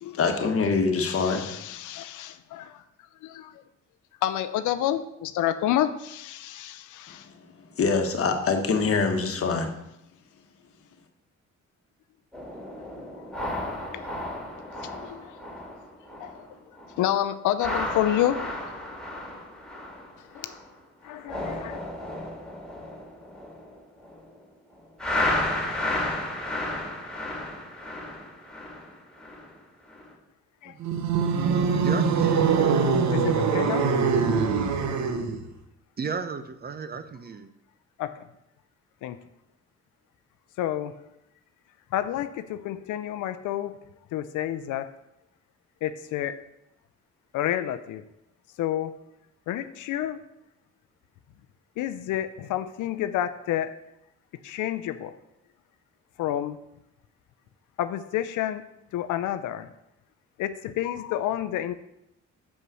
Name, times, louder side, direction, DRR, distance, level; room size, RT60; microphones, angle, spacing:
voice 1, 0.2-1.5 7.1-7.2 7.8-9.7, left 4 dB, 50° left, 5 dB, 1.3 m, -24 dB
voice 2, 1.0-2.8 3.2-3.5 4.2-7.3 13.9-14.1 14.8-15.4 16.2-16.5 17.0-18.5 20.3-20.5 21.0-21.8 30.6-30.8 33.1-33.9 38.0-38.2 39.0-39.2 40.6-40.9 41.9-43.8 44.1-44.9 45.8-46.4 47.3-48.0 48.6-48.9 49.5-50.2 51.8-53.8 54.4-55.1 56.2-56.6 57.8-58.6 58.9-59.7 60.4-61.7, left 12 dB, 80° left, 11 dB, 0.5 m, -29 dB
sound 1, 12.3-16.5 16.8-17.1 17.5-20.7 21.0-24.3 25.0-29.5 29.9-30.1, left 1 dB, ahead, 2.7 m, -33 dB
sound 2, 30.8-35.5, right 5 dB, 65° right, 0.9 m, -23 dB
voice 3, 31.8-32.9 36.0-37.5, right 5 dB, 30° right, 11 dB, 0.6 m, -34 dB
5.6 x 5.5 x 6.2 m, 0.84 s
cardioid pair, 90°, 30 cm